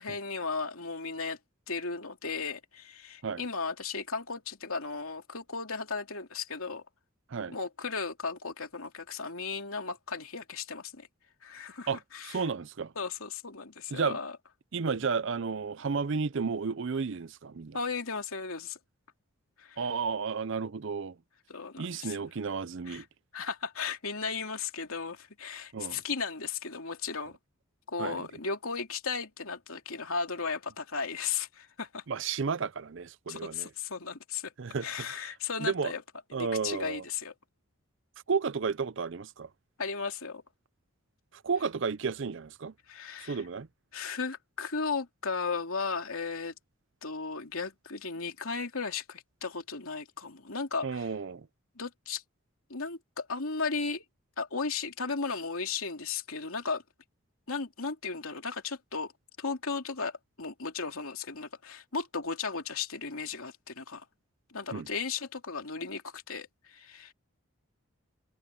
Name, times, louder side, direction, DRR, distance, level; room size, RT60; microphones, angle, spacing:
voice 1, 0.0-1.4 1.7-6.8 7.5-11.1 11.4-12.4 13.0-14.3 17.7-18.8 19.6-19.8 21.5-22.3 22.9-23.0 23.3-27.4 27.9-32.0 33.3-34.5 34.8-36.0 36.3-37.3 39.8-40.4 42.9-43.4 43.9-46.5 47.0-51.1 51.8-52.2 52.7-54.0 54.4-56.8 57.5-59.1 59.4-64.0 64.5-67.1, left 5 dB, 75° left, 2.8 m, -35 dB
voice 2, 11.9-12.9 13.9-14.2 14.7-17.8 19.8-21.2 21.8-23.1 25.7-26.0 28.0-28.3 32.1-33.7 34.6-35.3 35.6-35.9 36.3-37.0 38.3-39.5 41.3-42.7 43.2-43.7 50.8-51.5 64.7-64.9, right 5 dB, 55° right, 0.5 m, -32 dB
head